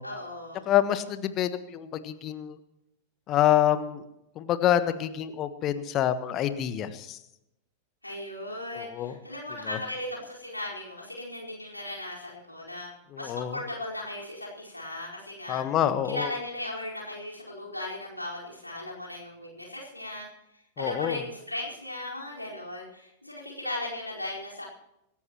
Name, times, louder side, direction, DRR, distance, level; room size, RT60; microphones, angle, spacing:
voice 1, 0.0-0.6 8.0-12.9 13.2-15.6 16.0-20.3 20.8-24.6, left 1 dB, 85° left, -3 dB, 4.7 m, -37 dB
voice 2, 0.7-2.6 3.3-4.0 4.3-7.2 8.7-9.2 9.6-9.8 13.1-13.6 15.5-16.3 20.8-21.2, left 11 dB, 35° left, 12 dB, 1.3 m, -27 dB
26.0 x 13.5 x 3.1 m, 0.87 s
figure-of-eight pair, 90°, 0 cm